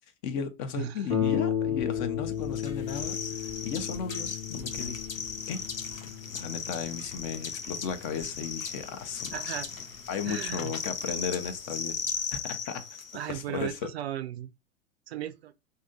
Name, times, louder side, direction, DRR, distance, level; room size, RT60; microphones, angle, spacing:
voice 1, 0.2-5.0 5.5-5.6 5.9-6.1 6.3-9.6 10.1-12.8 13.3-13.9, left 6 dB, 35° left, 0.6 m, -35 dB
Harp, 1.1-10.3 11.1-11.2 11.7-11.8, left 9 dB, 15° left, 0.9 m, -34 dB
sound 1, 2.5-13.4, left 6 dB, 80° left, 0.7 m, -37 dB
voice 2, 9.3-9.7 10.3-10.7 13.1-14.5 15.1-15.5, right 12 dB, 55° right, 0.4 m, -36 dB
2.7 x 2.6 x 3.6 m
figure-of-eight pair, 95°, 39 cm